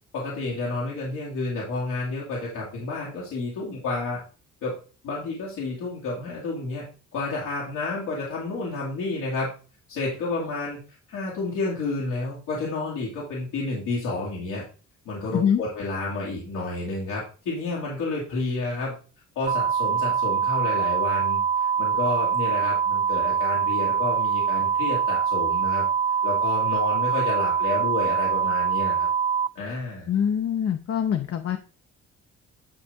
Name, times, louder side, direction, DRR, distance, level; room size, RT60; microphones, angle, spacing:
voice 1, 0.1-4.2 4.6-4.8 5.0-6.9 7.1-9.5 9.9-10.8 11.1-14.6 15.0-18.9 19.4-25.9 26.2-29.1 29.5-30.1, left 3 dB, 90° left, -5 dB, 2.5 m, -30 dB
sound 1, 19.5-29.5, right 7 dB, 25° right, 0.3 m, -24 dB
voice 2, 30.1-31.6, left 8 dB, 50° left, 6 dB, 0.8 m, -24 dB
10.5 x 4.1 x 3.6 m, 0.37 s
cardioid pair, 90°, 30 cm